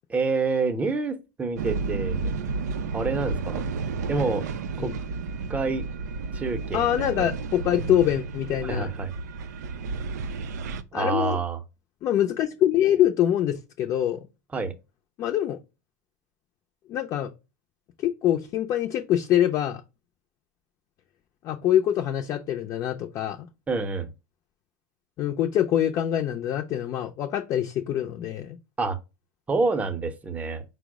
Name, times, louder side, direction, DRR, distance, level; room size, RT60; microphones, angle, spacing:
voice 1, 0.1-2.3 2.9-3.6 4.1-4.5 4.8-4.9 5.5-5.8 6.3-7.3 8.6-9.1 10.9-11.6 14.5-14.7 23.7-24.1 28.8-29.0 29.5-30.6, right 4 dB, 15° right, 0.6 m, -27 dB
sound 1, 1.5-10.8, right 4 dB, 85° right, 0.4 m, -32 dB
voice 2, 6.7-8.9 10.9-11.4 12.0-14.3 15.2-15.6 16.9-17.3 18.0-19.8 21.4-23.5 25.2-28.6, left 11 dB, 40° left, 0.5 m, -24 dB
4.5 x 2.0 x 4.6 m
supercardioid pair, 115°, 9 cm